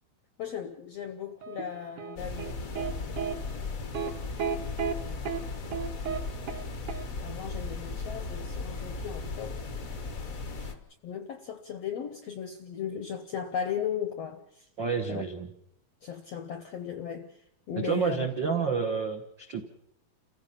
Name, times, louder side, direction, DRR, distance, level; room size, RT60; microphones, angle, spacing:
voice 1, 0.4-4.2 5.0-5.4 7.2-9.6 10.6-10.8 11.0-14.7 15.1-15.2 16.0-18.3, left 8 dB, 70° left, 8 dB, 1.5 m, -37 dB
sound 1, 1.4-2.9 3.2-3.3 3.9-4.1 4.4-4.9 5.3-5.4 5.7-6.2 6.5-6.6 6.9-7.0, right 7 dB, 60° right, 2.8 m, -32 dB
sound 2, 2.2-10.7, left 3 dB, 90° left, 0.7 m, -36 dB
voice 2, 14.8-15.5 17.8-19.6, right 5 dB, 80° right, 4 dB, 1.0 m, -29 dB
29.5 x 15.5 x 5.8 m, 0.77 s
omnidirectional pair, 4.3 m